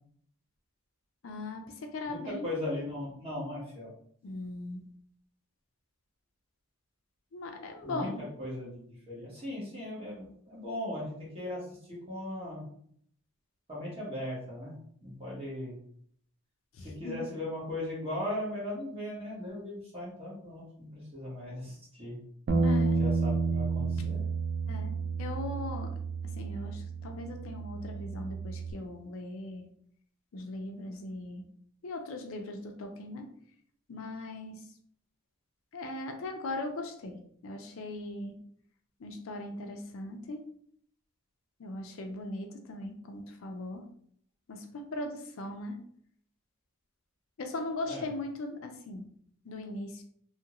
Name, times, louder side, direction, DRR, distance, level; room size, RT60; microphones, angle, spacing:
voice 1, 1.2-2.5 4.2-4.8 7.3-8.2 16.7-17.2 22.6-23.0 24.7-26.0 26.2-29.6 30.3-31.4 31.8-33.2 33.9-34.7 35.7-38.4 39.0-40.4 41.6-43.9 44.5-45.8 47.4-49.1 49.4-50.0, left 2 dB, 65° left, 4 dB, 0.4 m, -39 dB
voice 2, 2.1-3.9 7.8-8.1 8.4-12.6 13.7-14.7 15.0-15.8 16.8-22.2 23.0-24.2 47.9-48.1, left 1 dB, 25° right, -6 dB, 1.3 m, -38 dB
Bass guitar, 22.5-28.7, right 4 dB, 50° right, 0.3 m, -31 dB
2.7 x 2.4 x 2.9 m, 0.64 s
head